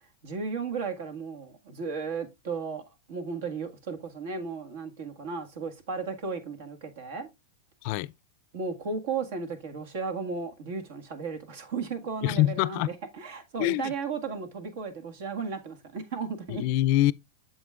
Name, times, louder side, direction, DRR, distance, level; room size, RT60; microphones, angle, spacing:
voice 1, 0.2-2.8 3.1-7.3 8.5-16.6, right 5 dB, 65° right, 1.7 m, -35 dB
voice 2, 7.8-8.1 12.2-12.9 13.6-13.9 16.5-17.1, left 16 dB, 50° left, 0.3 m, -24 dB
7.8 x 7.4 x 2.4 m
supercardioid pair, 145°, 0 cm